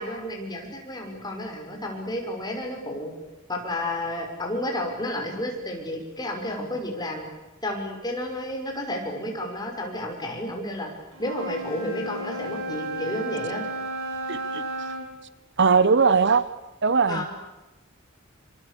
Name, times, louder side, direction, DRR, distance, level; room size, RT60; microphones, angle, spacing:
voice 1, 0.0-3.1 3.5-7.2 7.6-10.9 11.2-13.6 17.1-17.3, left 1 dB, 20° left, 1 dB, 5.9 m, -31 dB
Wind instrument woodwind instrument, 11.1-15.1, right 1 dB, 90° right, 6.3 m, -33 dB
voice 2, 14.3-14.9 15.6-16.4 16.8-17.2, right 5 dB, 55° right, 16 dB, 0.8 m, -20 dB
26.5 x 25.5 x 8.4 m, 1.1 s
head